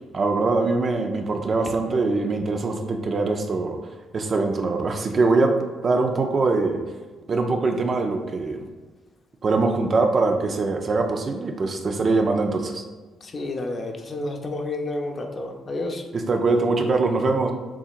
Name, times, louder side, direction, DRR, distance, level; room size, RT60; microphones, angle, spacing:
voice 1, 0.1-3.8 4.1-5.5 5.8-6.8 7.3-8.6 9.4-12.8 16.1-17.5, right 3 dB, 45° right, 4 dB, 0.5 m, -22 dB
voice 2, 13.2-16.0, left 2 dB, 45° left, 3 dB, 0.8 m, -30 dB
7.2 x 2.8 x 2.5 m, 1.3 s
supercardioid pair, 70°, 0 cm